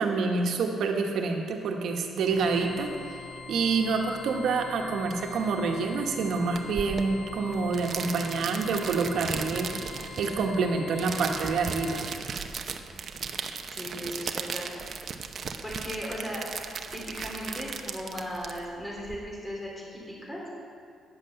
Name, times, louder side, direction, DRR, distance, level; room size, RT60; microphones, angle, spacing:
voice 1, 0.0-3.2 3.5-12.0, right 4 dB, 70° right, 2 dB, 1.4 m, -27 dB
sound 1, 2.2-12.2, left 3 dB, 40° left, 2.5 m, -43 dB
sound 2, 6.6-19.2, right 5 dB, 50° right, 0.8 m, -37 dB
voice 2, 13.7-14.7 15.6-16.4 16.9-20.4, equal, 10° left, -3 dB, 3.5 m, -37 dB
10.5 x 7.8 x 7.9 m, 2.4 s
cardioid pair, 90°, 0 cm